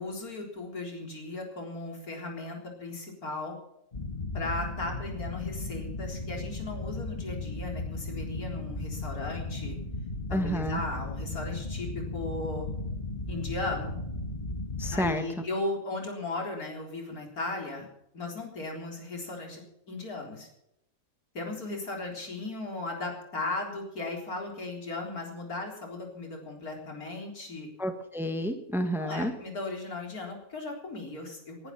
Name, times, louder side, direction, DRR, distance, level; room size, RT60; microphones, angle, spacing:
voice 1, 0.0-3.6 4.3-9.8 10.3-12.7 13.3-14.0 14.9-17.9 18.1-19.6 19.9-20.5 21.3-27.7 29.0-31.7, left 2 dB, 80° left, 1 dB, 4.3 m, -36 dB
sound 1, 3.9-15.2, left 2 dB, 30° left, 1.4 m, -36 dB
voice 2, 10.3-10.8 14.8-15.2 27.8-29.3, equal, ahead, 7 dB, 1.4 m, -30 dB
20.0 x 11.0 x 5.8 m, 0.82 s
omnidirectional pair, 1.5 m